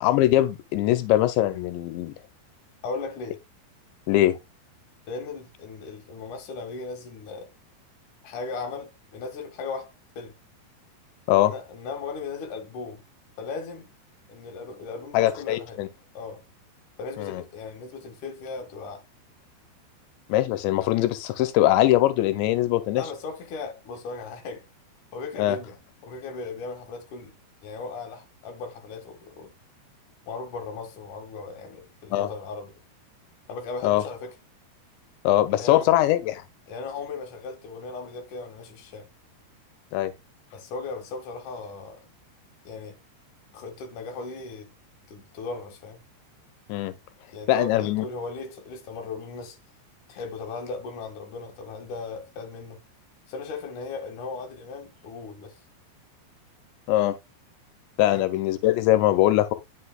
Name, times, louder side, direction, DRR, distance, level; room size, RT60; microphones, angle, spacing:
voice 1, 0.0-2.1 4.1-4.4 11.3-11.5 15.1-15.9 17.2-17.4 20.3-23.0 25.4-25.6 32.1-32.3 33.8-34.0 35.2-36.4 39.9-40.1 46.7-46.9 47.5-48.1 56.9-57.1 58.0-59.5, left 14 dB, 85° left, 3.0 m, -22 dB
voice 2, 2.8-3.4 5.1-7.5 8.2-10.3 11.4-13.0 13.4-13.9 14.3-15.8 16.1-16.4 17.0-19.0 22.9-24.6 25.1-27.3 27.6-29.5 30.3-32.7 33.5-34.3 35.5-35.9 36.7-39.1 40.5-42.0 42.6-43.0 43.5-44.7 45.1-46.0 47.3-49.6 50.1-52.8 53.3-55.5 58.1-58.3, left 4 dB, 55° left, 2.7 m, -37 dB
9.7 x 6.3 x 2.3 m
omnidirectional pair, 5.0 m